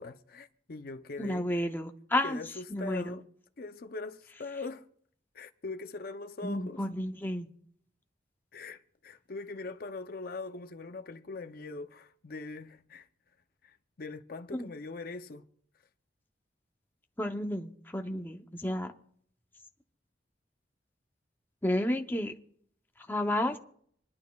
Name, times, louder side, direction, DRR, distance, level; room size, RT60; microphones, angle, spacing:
voice 1, 0.0-1.7 2.2-3.3 3.6-4.9 5.3-6.9 8.5-13.1 13.6-15.5, left 3 dB, 55° left, 0.6 m, -42 dB
voice 2, 1.2-2.4 2.7-3.2 6.4-7.5 14.5-14.7 17.2-18.9 21.6-22.3 23.1-23.6, left 1 dB, 10° left, 0.7 m, -31 dB
26.0 x 11.5 x 2.3 m
head